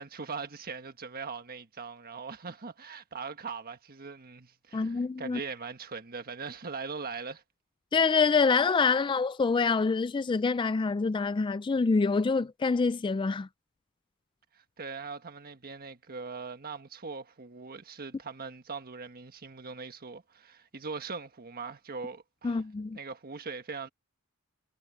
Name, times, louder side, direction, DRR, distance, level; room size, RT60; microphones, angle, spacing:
voice 1, 0.0-7.4 14.5-22.6 22.9-23.9, right 4 dB, 45° right, 1.4 m, -41 dB
voice 2, 4.7-5.4 7.9-13.5 22.4-23.0, left 4 dB, 20° left, 0.3 m, -26 dB
head